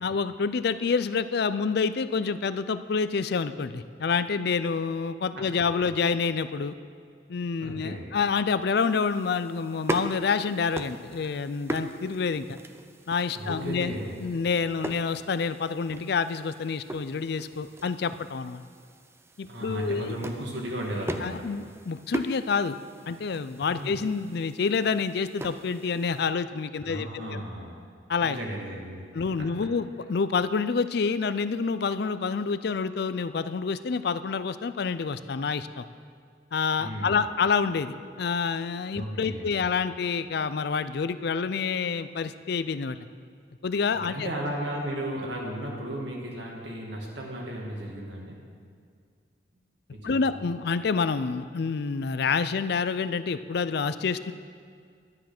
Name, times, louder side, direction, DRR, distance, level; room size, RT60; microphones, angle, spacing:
voice 1, 0.0-6.7 7.3-12.6 13.1-18.6 19.4-20.2 21.2-22.8 23.1-27.4 28.1-28.4 29.1-35.9 36.5-43.0 43.6-44.3 50.0-54.3, left 5 dB, 60° left, 13 dB, 0.4 m, -28 dB
voice 2, 7.6-8.1 13.3-14.1 19.5-21.5 23.7-24.0 26.8-27.8 28.2-29.0 29.4-29.5 36.8-37.2 38.9-39.6 44.1-48.4 49.9-50.5, right 1 dB, 75° right, -1 dB, 2.4 m, -35 dB
sound 1, 8.8-26.3, right 1 dB, 15° right, 0.5 m, -40 dB
11.0 x 10.0 x 6.0 m, 2.1 s
head